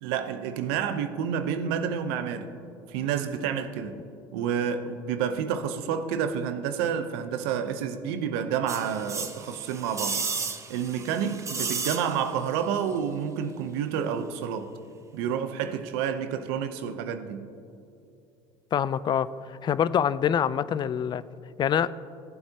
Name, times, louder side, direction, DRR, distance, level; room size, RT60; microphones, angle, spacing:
voice 1, 0.0-2.5 2.9-4.0 4.3-10.2 10.7-14.7 15.1-17.5, right 8 dB, 85° right, 0.8 m, -29 dB
sound 1, 8.7-12.5 12.7-12.8, right 4 dB, 25° right, 0.8 m, -33 dB
voice 2, 18.7-21.2 21.6-21.9, left 8 dB, 35° left, 0.4 m, -25 dB
17.0 x 7.9 x 2.9 m
supercardioid pair, 95°, 12 cm